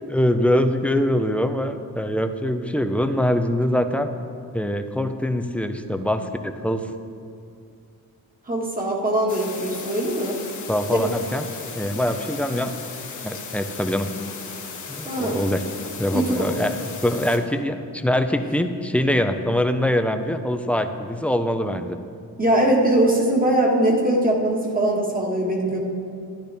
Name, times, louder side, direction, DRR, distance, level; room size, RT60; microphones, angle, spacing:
voice 1, 0.1-4.1 4.5-6.8 10.7-11.4 11.8-12.7 13.2-14.1 14.9-15.6 16.0-16.8 17.0-22.0, left 1 dB, 5° left, 7 dB, 0.5 m, -23 dB
voice 2, 8.5-10.4 10.9-11.0 15.0-15.5 16.1-16.5 22.4-25.8, right 1 dB, 25° right, -1 dB, 1.8 m, -21 dB
sound 1, 9.3-17.4, left 5 dB, 55° left, 1.4 m, -36 dB
12.0 x 10.0 x 3.5 m, 2.3 s
cardioid pair, 110°, 36 cm